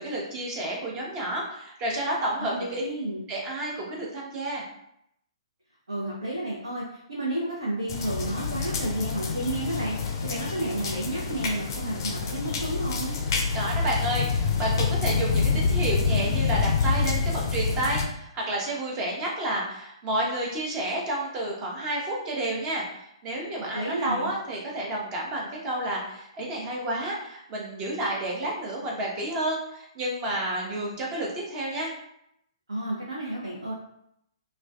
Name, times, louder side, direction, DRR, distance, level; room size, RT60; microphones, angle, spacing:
voice 1, 0.0-2.8 3.3-4.6 13.5-31.9, right 1 dB, 25° right, -2 dB, 0.6 m, -30 dB
voice 2, 2.4-3.2 5.9-13.2 23.7-24.3 32.7-33.7, right 1 dB, 70° right, -5 dB, 0.6 m, -31 dB
sound 1, 7.9-18.0, left 5 dB, 45° left, 0.4 m, -27 dB
2.3 x 2.2 x 2.3 m, 0.76 s
figure-of-eight pair, 120°, 3 cm